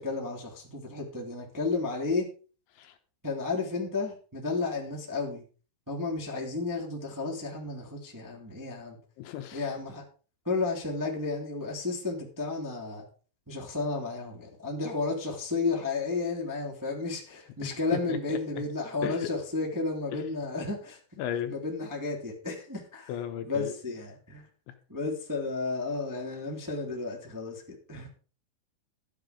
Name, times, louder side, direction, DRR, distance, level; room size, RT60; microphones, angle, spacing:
voice 1, 0.0-2.3 3.2-5.4 5.9-9.0 9.5-10.0 10.4-13.0 13.5-21.0 21.5-23.1 23.5-24.5 24.9-28.1, left 3 dB, 5° right, -2 dB, 1.5 m, -32 dB
voice 2, 9.2-9.7 17.6-18.6 19.0-19.3 20.1-20.2 21.2-21.5 23.1-23.7, left 10 dB, 75° left, 7 dB, 3.1 m, -35 dB
12.5 x 9.6 x 5.1 m, 0.38 s
omnidirectional pair, 5.8 m